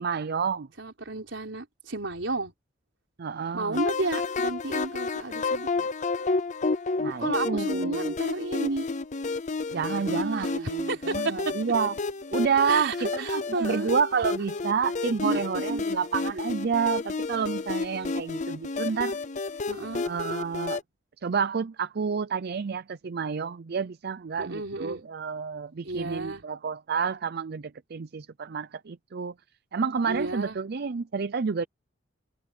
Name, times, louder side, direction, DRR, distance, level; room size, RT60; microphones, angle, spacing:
voice 1, 0.0-0.7 3.2-3.8 7.0-8.1 9.7-11.9 12.3-19.2 20.0-20.8 21.2-29.3 29.7-31.7, right 6 dB, 55° right, 0.5 m, -29 dB
voice 2, 0.8-2.5 3.5-5.9 7.2-8.9 10.1-11.4 12.7-13.9 15.2-15.8 19.7-20.0 24.4-25.0 25.8-26.4 30.1-30.6, right 2 dB, 75° right, 4.4 m, -32 dB
sound 1, 3.7-20.8, left 3 dB, 40° left, 0.7 m, -31 dB
head